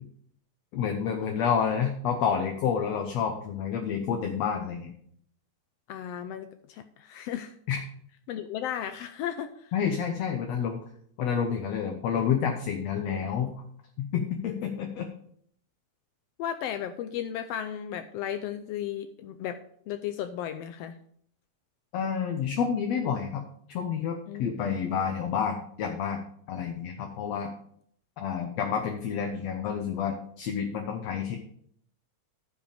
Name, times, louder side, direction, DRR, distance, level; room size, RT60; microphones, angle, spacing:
voice 1, 0.7-4.9 7.7-7.8 9.7-10.8 11.2-13.6 14.0-15.1 21.9-23.4 23.7-26.2 26.5-27.5 28.2-31.4, left 7 dB, 65° left, 4 dB, 1.9 m, -29 dB
voice 2, 5.9-7.5 8.3-9.7 16.4-19.6 19.9-20.9 24.3-24.8, left 10 dB, 85° left, 8 dB, 1.4 m, -35 dB
14.0 x 5.0 x 5.0 m, 0.65 s
omnidirectional pair, 3.5 m